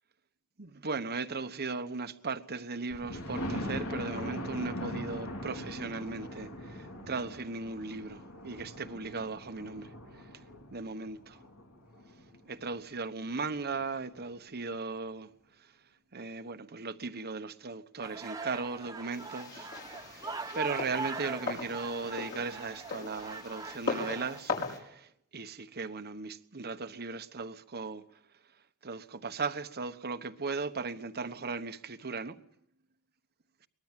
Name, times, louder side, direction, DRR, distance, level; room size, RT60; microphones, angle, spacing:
voice 1, 0.6-10.3 10.7-11.4 12.4-15.3 15.6-15.7 16.1-28.0 28.8-32.4, right 4 dB, 45° right, 1.1 m, -37 dB
Thunder, 2.9-12.6 13.2-13.3 13.7-13.8 14.1-14.2, left 1 dB, 90° left, 4.1 m, -41 dB
sound 1, 18.0-24.4, right 3 dB, 15° right, 1.2 m, -41 dB
sound 2, 19.1-24.8, left 4 dB, 55° left, 5.7 m, -39 dB
23.0 x 20.0 x 7.5 m
head